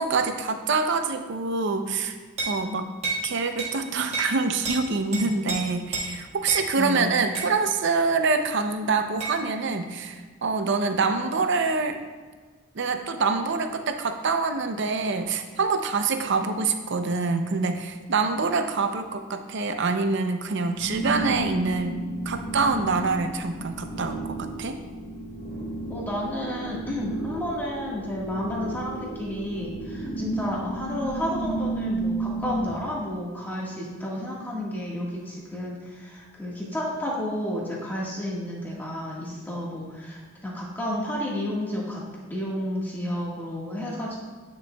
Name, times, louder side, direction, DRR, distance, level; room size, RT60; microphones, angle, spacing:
voice 1, 0.0-2.1 2.4-2.9 3.2-12.0 12.7-24.8, right 4 dB, 60° right, 7 dB, 0.6 m, -25 dB
sound 1, 2.4-2.6 3.0-3.2 3.6-3.7 4.1-4.3 4.6-4.8 5.1-5.6 5.9-6.1 6.5-6.6 7.3-7.5 9.2-9.4, right 3 dB, 30° right, 1.6 m, -29 dB
voice 2, 6.8-7.1 25.9-42.0 42.3-44.2, left 1 dB, 10° left, -5 dB, 1.5 m, -31 dB
sound 2, 20.7-32.7, right 2 dB, 45° left, 1.5 m, -33 dB
9.6 x 6.1 x 2.3 m, 1.5 s
head